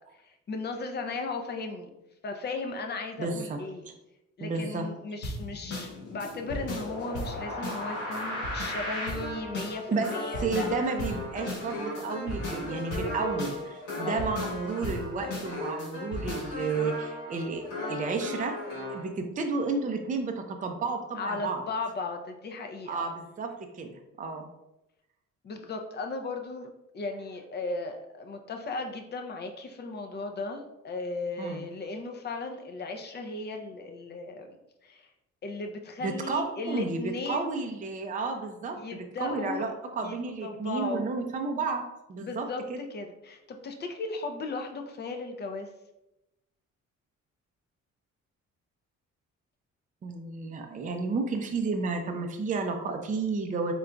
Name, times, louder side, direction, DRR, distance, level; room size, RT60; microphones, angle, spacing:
voice 1, 0.1-1.9 2.2-3.9 4.4-10.7 14.0-14.2 21.2-23.1 25.4-34.6 34.8-35.1 35.4-37.5 38.8-39.7 40.0-41.1 42.2-45.7, left 3 dB, 35° left, 4 dB, 0.5 m, -36 dB
voice 2, 3.2-3.9 4.4-4.9 9.9-18.6 18.9-21.6 22.9-24.5 31.4-31.6 36.0-41.8 42.1-42.8 50.0-53.7, right 4 dB, 25° right, 4 dB, 0.5 m, -32 dB
sound 1, 5.2-19.0, left 1 dB, 85° left, 1.4 m, -35 dB
3.8 x 3.5 x 2.2 m, 0.91 s
cardioid pair, 90°, 30 cm